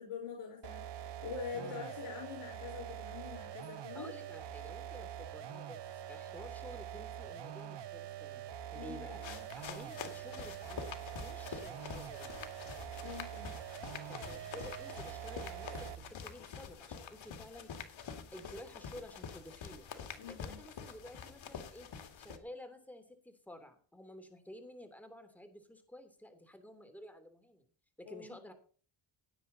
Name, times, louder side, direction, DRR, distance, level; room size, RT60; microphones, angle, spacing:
voice 1, 0.0-4.1 8.7-9.4 13.0-13.5 20.2-20.6 28.1-28.4, left 5 dB, 85° left, 1 dB, 5.1 m, -45 dB
sound 1, 0.6-16.1, right 10 dB, 55° right, 1.0 m, -45 dB
voice 2, 1.5-1.9 3.9-12.3 14.1-17.7 18.3-21.9 22.2-27.6 28.0-28.5, left 1 dB, 5° left, 6 dB, 3.1 m, -52 dB
sound 2, 9.2-22.4, left 7 dB, 65° left, 2.4 m, -47 dB
17.0 x 9.2 x 4.1 m, 0.41 s
cardioid pair, 105°, 50 cm